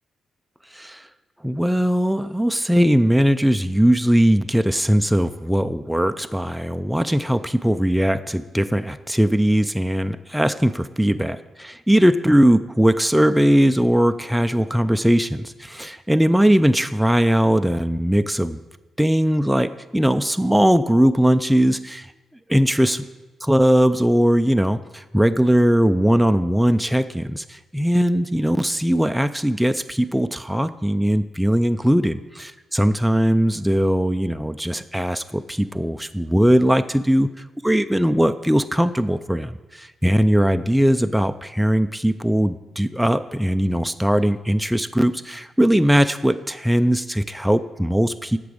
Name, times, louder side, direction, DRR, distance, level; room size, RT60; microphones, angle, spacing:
voice 1, 0.7-1.1 1.4-18.6 19.0-22.1 22.5-23.1 23.4-37.3 37.6-48.4, equal, 5° right, 9 dB, 0.3 m, -19 dB
8.4 x 6.0 x 7.8 m, 1.2 s
cardioid pair, 105°, 0 cm